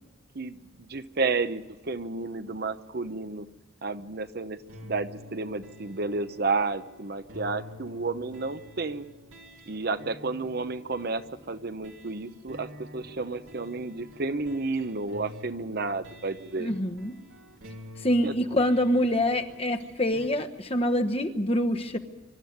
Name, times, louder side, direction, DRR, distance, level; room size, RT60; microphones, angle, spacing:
voice 1, 0.3-3.5 3.8-9.0 9.7-16.7 18.2-18.3, right 3 dB, 50° right, 11 dB, 0.9 m, -31 dB
sound 1, 4.7-20.3, left 1 dB, 80° right, 3.0 m, -48 dB
voice 2, 16.6-17.1 18.0-22.0, left 1 dB, 30° left, 6 dB, 1.2 m, -25 dB
25.0 x 13.0 x 9.4 m, 1.2 s
head